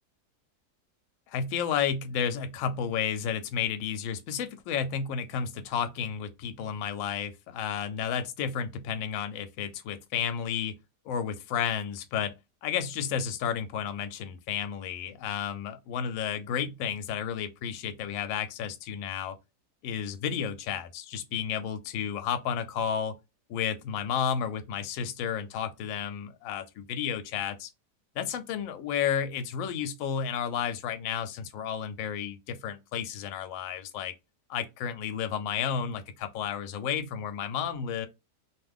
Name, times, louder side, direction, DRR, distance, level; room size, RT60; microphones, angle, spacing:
voice 1, 1.3-10.8 11.1-12.3 12.6-19.4 19.8-23.2 23.5-27.7 28.2-34.1 34.5-38.1, left 8 dB, 70° left, 0.8 m, -32 dB
2.7 x 2.4 x 3.5 m
omnidirectional pair, 1.7 m